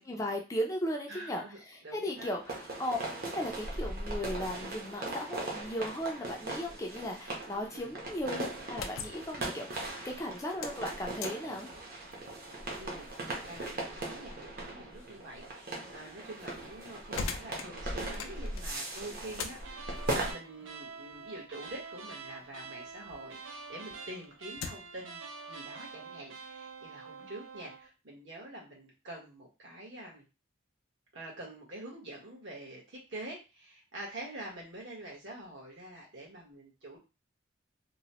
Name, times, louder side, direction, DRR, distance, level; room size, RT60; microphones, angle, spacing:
voice 1, 0.0-3.0 3.3-11.7, equal, 15° left, 1 dB, 0.4 m, -36 dB
voice 2, 1.1-2.3 7.7-8.0 12.8-30.3 31.1-37.0, right 1 dB, 70° right, -2 dB, 1.2 m, -46 dB
sound 1, 2.1-20.3, right 2 dB, 50° right, 0.8 m, -39 dB
sound 2, 8.7-23.3 23.7-25.0, left 5 dB, 85° left, 0.4 m, -46 dB
sound 3, 19.6-27.9, right 5 dB, 85° right, 0.5 m, -46 dB
2.9 x 2.1 x 2.9 m, 0.29 s
head